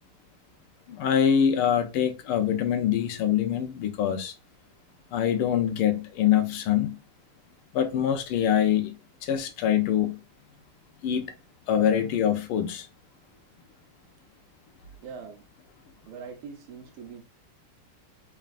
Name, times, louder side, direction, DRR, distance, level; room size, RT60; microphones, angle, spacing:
voice 1, 0.9-4.3 5.1-7.0 7.7-8.9 9.2-10.2 11.0-11.3 11.7-12.9, left 9 dB, 90° left, 1.6 m, -24 dB
voice 2, 15.0-15.5 16.0-17.2, right 6 dB, 75° right, 1.6 m, -42 dB
4.0 x 3.4 x 2.4 m
omnidirectional pair, 2.4 m